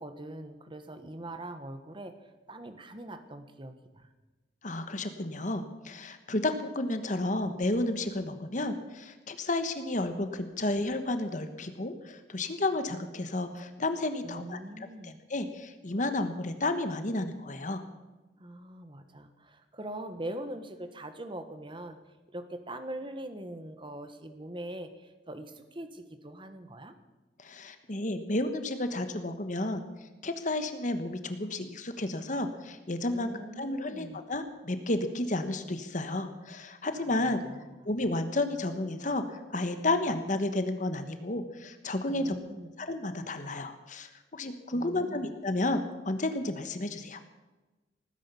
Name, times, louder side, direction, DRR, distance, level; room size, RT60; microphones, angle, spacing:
voice 1, 0.0-2.1 2.5-4.1 14.2-15.2 18.4-22.0 22.3-26.9 33.1-34.2 36.9-37.7 42.1-42.7 44.7-45.3, right 1 dB, 30° right, 8 dB, 1.4 m, -42 dB
voice 2, 4.6-17.8 27.4-29.8 30.2-33.3 33.6-37.4 37.8-42.4 42.8-47.2, left 2 dB, 45° left, 9 dB, 1.3 m, -32 dB
18.5 x 10.0 x 7.0 m, 1.1 s
head